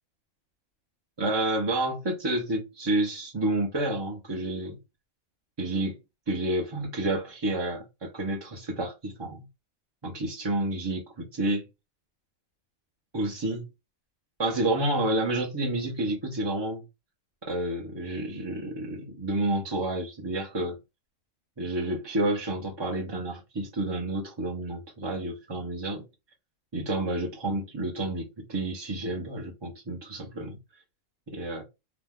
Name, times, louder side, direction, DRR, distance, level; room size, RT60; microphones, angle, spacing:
voice 1, 1.2-4.8 5.6-6.0 6.3-9.4 10.0-11.6 13.1-13.6 14.4-16.8 17.5-20.8 21.6-26.0 26.7-30.6 31.3-31.6, right 1 dB, 30° right, 0.5 m, -29 dB
2.9 x 2.1 x 3.5 m
omnidirectional pair, 1.4 m